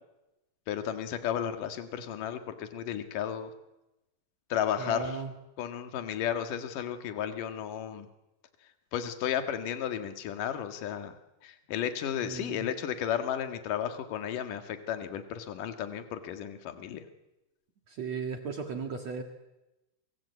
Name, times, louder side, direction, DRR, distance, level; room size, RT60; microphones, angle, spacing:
voice 1, 0.7-3.5 4.5-5.2 5.6-8.1 8.9-11.1 11.4-17.0, left 9 dB, 55° left, 8 dB, 2.7 m, -33 dB
voice 2, 4.8-5.3 12.1-12.7 17.9-19.2, right 5 dB, 60° right, 5 dB, 1.8 m, -36 dB
27.5 x 24.5 x 8.4 m, 0.97 s
omnidirectional pair, 5.9 m